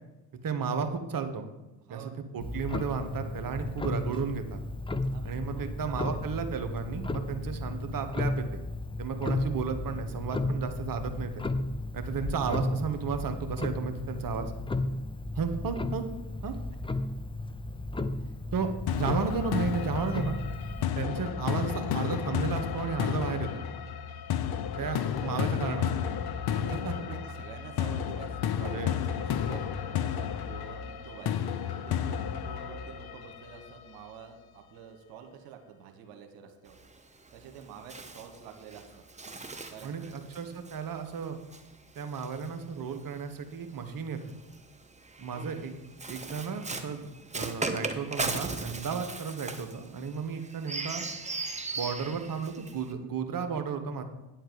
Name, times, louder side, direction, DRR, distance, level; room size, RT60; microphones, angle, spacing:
voice 1, 0.4-1.4 1.9-2.0 2.3-4.6 5.2-8.6 9.0-11.4 11.9-14.5 15.3-16.1 16.4-16.5 18.5-20.4 20.9-23.5 24.8-25.9 26.8-26.9 28.6-28.9 39.8-41.4 41.9-44.3 45.2-45.8 46.1-47.1 47.3-51.1 51.7-54.0, right 5 dB, 45° right, 7 dB, 1.3 m, -33 dB
Clock, 2.4-20.8, left 2 dB, 10° left, 0.6 m, -34 dB
voice 2, 5.1-6.3 12.2-12.5 16.5-16.6 18.2-18.4 24.8-25.9 26.5-31.4 31.8-36.8 37.3-39.0 39.7-40.2 45.3-45.6, right 7 dB, 75° right, 6 dB, 1.2 m, -48 dB
sound 1, 18.9-33.8, left 9 dB, 50° left, 0.8 m, -32 dB
Bird, 36.7-43.2 44.1-52.9, right 3 dB, 15° right, 1.0 m, -39 dB
9.2 x 4.6 x 7.6 m, 1.0 s
hypercardioid pair, 50°, 48 cm